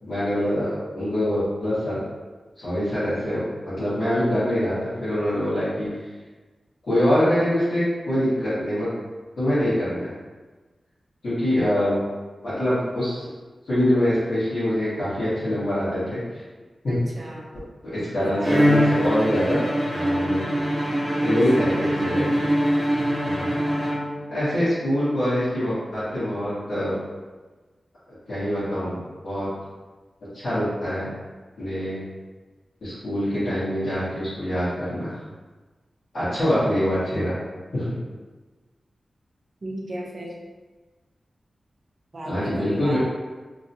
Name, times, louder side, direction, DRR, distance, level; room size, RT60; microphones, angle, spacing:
voice 1, 0.0-2.0 2.6-5.9 6.9-8.9 9.3-10.1 11.2-12.0 12.4-13.3 13.6-16.2 16.8-17.0 17.8-19.6 19.9-20.4 21.2-22.3 23.2-23.5 24.3-26.9 28.3-29.5 30.3-31.1 31.6-32.0 32.8-35.2 36.1-37.3 37.7-37.9 42.2-43.0, equal, 65° left, -17 dB, 1.5 m, -24 dB
voice 2, 16.9-17.5 18.2-18.6 39.6-40.3 42.1-43.0, right 1 dB, 45° right, -3 dB, 0.6 m, -35 dB
Bowed string instrument, 18.4-24.4, equal, 5° right, 1.1 m, -23 dB
3.0 x 2.8 x 2.7 m, 1.3 s
wide cardioid pair, 140°, 0 cm